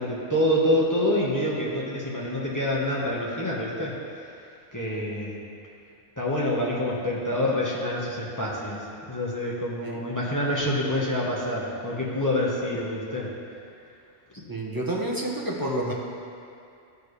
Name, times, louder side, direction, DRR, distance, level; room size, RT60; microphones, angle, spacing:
voice 1, 0.0-4.2 4.7-5.4 6.2-13.3 14.4-14.5, left 1 dB, 15° left, -6 dB, 1.1 m, -27 dB
voice 2, 14.5-15.9, right 1 dB, 20° right, -3 dB, 0.7 m, -29 dB
13.5 x 4.8 x 3.3 m, 2.5 s
omnidirectional pair, 1.5 m